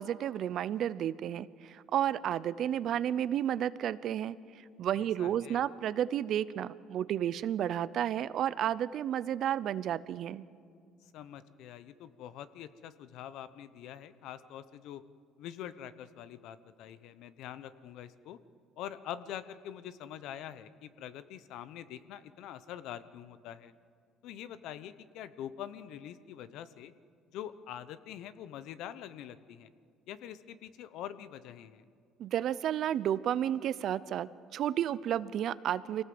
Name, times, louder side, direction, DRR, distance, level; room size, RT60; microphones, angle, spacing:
voice 1, 0.0-4.4 4.8-10.4 32.2-36.0, right 10 dB, 60° right, 17 dB, 0.7 m, -32 dB
voice 2, 4.9-5.6 11.0-15.0 15.4-18.4 18.8-23.7 24.2-26.9 27.3-29.7 30.1-31.8, left 10 dB, 75° left, 14 dB, 0.9 m, -45 dB
24.0 x 18.0 x 7.8 m, 2.2 s
cardioid pair, 100°, 0 cm